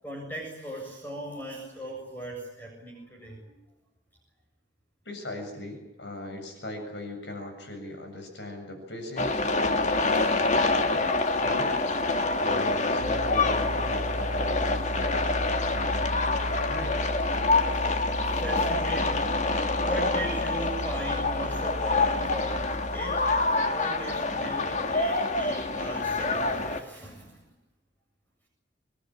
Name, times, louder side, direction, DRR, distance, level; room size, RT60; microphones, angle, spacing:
voice 1, 0.0-3.6 17.5-19.3 19.8-23.2 23.5-27.4, right 1 dB, 10° left, 0 dB, 7.5 m, -38 dB
voice 2, 5.0-11.7 12.4-17.1, left 1 dB, 70° left, 5 dB, 7.5 m, -40 dB
sound 1, 9.2-26.8, left 3 dB, 40° left, 1.9 m, -26 dB
sound 2, 13.0-23.5, equal, 85° right, 2.4 m, -35 dB
27.0 x 21.5 x 9.0 m, 0.95 s
head